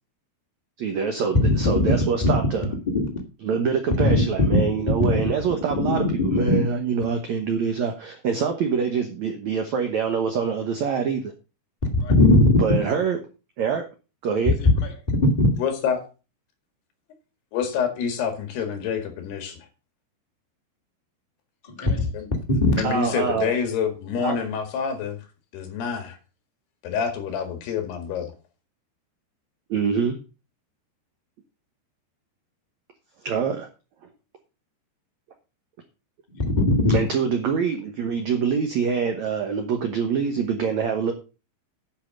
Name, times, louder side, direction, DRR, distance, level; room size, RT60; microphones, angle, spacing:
voice 1, 0.8-2.7 3.4-11.3 12.6-13.2 13.6-13.8 14.2-14.5 22.8-23.5 24.2-24.4 29.7-30.2 33.2-33.7 36.9-41.1, right 6 dB, 90° right, 5 dB, 1.6 m, -25 dB
voice 2, 1.4-1.9 2.2-2.3 3.0-3.1 4.5-4.6 5.8-5.9 6.3-6.6 12.0-12.6 14.6-14.7 15.4-15.5 21.7-22.1 22.6-22.8 36.3-37.0, left 2 dB, 25° left, 2 dB, 1.0 m, -18 dB
voice 3, 15.6-16.0 17.5-19.7 22.1-22.3 22.7-25.2 25.5-26.2 26.8-28.3, left 7 dB, 70° left, 6 dB, 3.8 m, -27 dB
10.5 x 5.7 x 6.3 m, 0.33 s
omnidirectional pair, 5.0 m